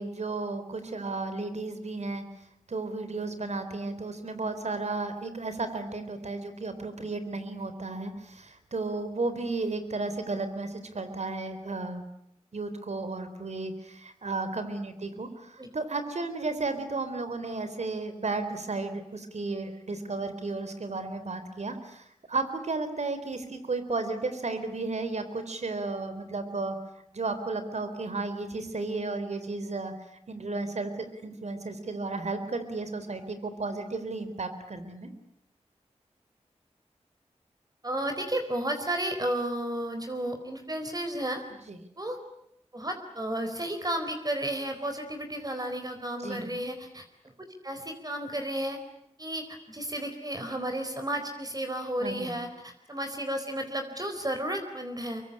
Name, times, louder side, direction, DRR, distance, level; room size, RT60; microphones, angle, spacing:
voice 1, 0.0-2.2 2.7-12.0 12.5-26.8 27.1-29.9 30.3-35.1 41.7-41.8 46.2-46.5 52.0-52.4, right 3 dB, 70° right, 10 dB, 3.9 m, -33 dB
voice 2, 37.8-41.4 42.0-42.2 42.7-47.0 47.6-48.8 49.2-55.2, right 1 dB, 30° right, 6 dB, 4.2 m, -33 dB
25.0 x 23.0 x 9.9 m, 0.76 s
cardioid pair, 50°, 12 cm